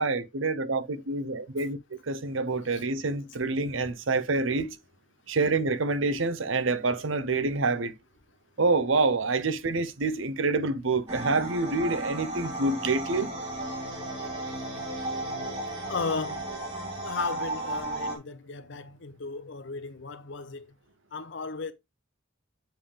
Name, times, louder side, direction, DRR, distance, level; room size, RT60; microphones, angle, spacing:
voice 1, 0.0-4.7 5.3-7.9 8.6-13.3, right 3 dB, 70° right, 0.8 m, -27 dB
sound 1, 11.1-18.2, right 1 dB, 25° right, 3.1 m, -34 dB
voice 2, 15.9-16.4 17.0-20.7 21.1-21.7, left 4 dB, 60° left, 0.7 m, -35 dB
7.6 x 3.5 x 5.0 m
head